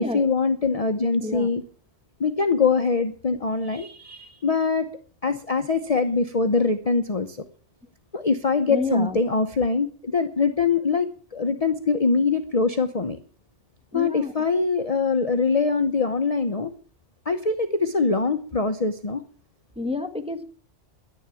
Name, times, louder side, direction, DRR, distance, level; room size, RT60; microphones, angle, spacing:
voice 1, 0.0-1.6 2.2-4.9 5.2-7.4 8.1-13.2 13.9-16.7 17.2-19.2, left 4 dB, 35° left, 8 dB, 0.9 m, -23 dB
voice 2, 8.7-9.2 13.9-14.3 19.8-20.4, left 2 dB, 5° right, 6 dB, 1.7 m, -29 dB
11.0 x 10.5 x 8.9 m, 0.43 s
omnidirectional pair, 1.2 m